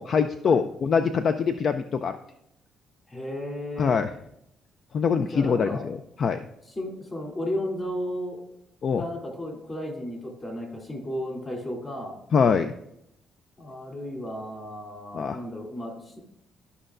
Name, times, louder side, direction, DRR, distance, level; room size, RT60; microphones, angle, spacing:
voice 1, 0.0-2.2 3.8-4.1 4.9-6.4 8.8-9.0 12.3-12.7 15.1-15.4, left 6 dB, 55° left, 9 dB, 0.4 m, -24 dB
voice 2, 3.1-4.0 5.3-5.8 6.6-8.4 8.9-12.2 13.6-16.2, left 1 dB, 30° left, 1 dB, 2.9 m, -34 dB
13.0 x 5.5 x 2.5 m, 0.79 s
cardioid pair, 90°, 0 cm